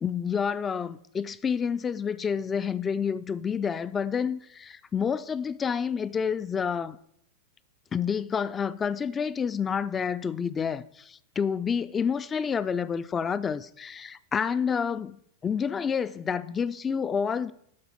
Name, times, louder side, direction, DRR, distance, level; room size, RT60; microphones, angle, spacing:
voice 1, 0.0-7.0 7.9-17.5, left 6 dB, 20° left, 0.3 m, -29 dB
12.0 x 4.1 x 7.0 m
figure-of-eight pair, 90°, 0 cm